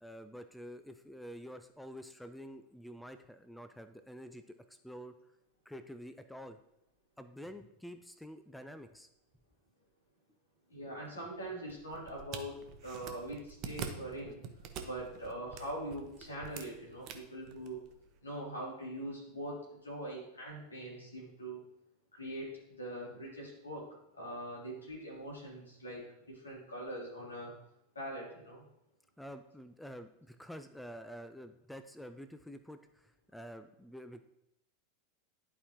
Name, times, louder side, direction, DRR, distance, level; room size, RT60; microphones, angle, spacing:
voice 1, 0.0-4.4 4.7-5.1 5.7-6.6 7.2-9.1 29.2-34.2, equal, ahead, 10 dB, 0.4 m, -48 dB
voice 2, 10.7-14.4 14.8-17.8 18.2-21.6 22.1-22.5 22.8-23.9 24.1-27.5 27.9-28.6, right 1 dB, 75° left, -4 dB, 2.9 m, -42 dB
sound 1, 11.7-18.2, right 6 dB, 40° right, 0.9 m, -46 dB
11.0 x 4.9 x 3.0 m, 0.82 s
figure-of-eight pair, 85°, 0 cm